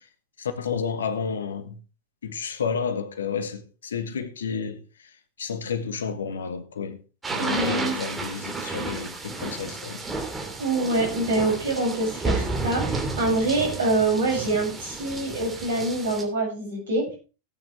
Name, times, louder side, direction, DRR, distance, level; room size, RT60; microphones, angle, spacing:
voice 1, 0.4-1.8 2.2-4.8 5.4-7.0 7.3-10.0, left 6 dB, 65° left, 1.4 m, -31 dB
sound 1, 7.2-16.2, right 3 dB, 10° right, 2.8 m, -32 dB
voice 2, 7.4-8.0 10.6-17.2, right 2 dB, 65° right, 7.5 m, -25 dB
17.0 x 9.0 x 3.5 m
figure-of-eight pair, 90°, 0 cm